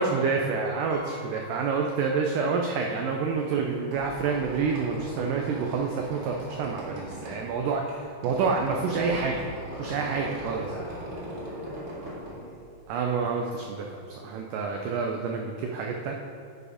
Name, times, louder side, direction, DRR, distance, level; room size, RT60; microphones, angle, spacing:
voice 1, 0.0-9.5 9.8-10.6 12.9-16.1, right 5 dB, 90° right, 2 dB, 1.8 m, -28 dB
Piano, 0.9-2.7 3.0-3.1 4.3-4.4 4.7-4.9, left 3 dB, 55° left, 3.3 m, -47 dB
Squeak, 3.8-13.2, right 1 dB, 45° right, 2.3 m, -40 dB
voice 2, 9.7-12.7, left 1 dB, 75° left, -4 dB, 1.8 m, -43 dB
11.0 x 4.9 x 5.0 m, 2.5 s
omnidirectional pair, 4.5 m